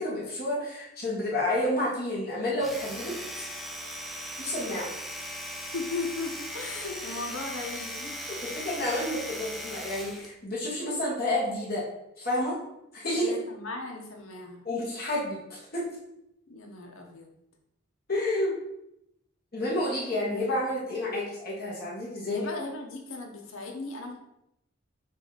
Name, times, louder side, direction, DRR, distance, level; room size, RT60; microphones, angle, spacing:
voice 1, 0.0-3.4 4.4-4.9 8.3-11.8 12.2-12.6 12.9-13.3 14.7-15.9 18.1-18.6 19.5-22.5, left 1 dB, 50° left, -7 dB, 1.7 m, -30 dB
Domestic sounds home sounds, 2.5-10.3, equal, ahead, 0.6 m, -38 dB
voice 2, 5.5-8.2 13.1-14.6 16.5-17.3 20.4-21.4 22.3-24.2, left 3 dB, 90° left, 1 dB, 1.2 m, -37 dB
6.8 x 2.8 x 5.1 m, 0.83 s
head